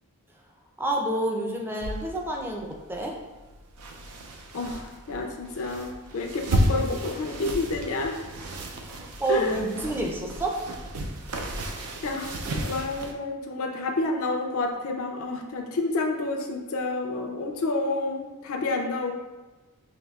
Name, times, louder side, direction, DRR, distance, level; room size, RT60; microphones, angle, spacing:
voice 1, 0.8-3.1 8.8-10.5, right 1 dB, 10° right, 0 dB, 0.4 m, -29 dB
sound 1, 1.8-13.1, right 1 dB, 85° right, 0.5 m, -33 dB
voice 2, 4.5-8.2 9.3-9.6 12.0-19.1, left 3 dB, 65° left, 2 dB, 0.4 m, -29 dB
5.6 x 2.7 x 2.3 m, 1.2 s
head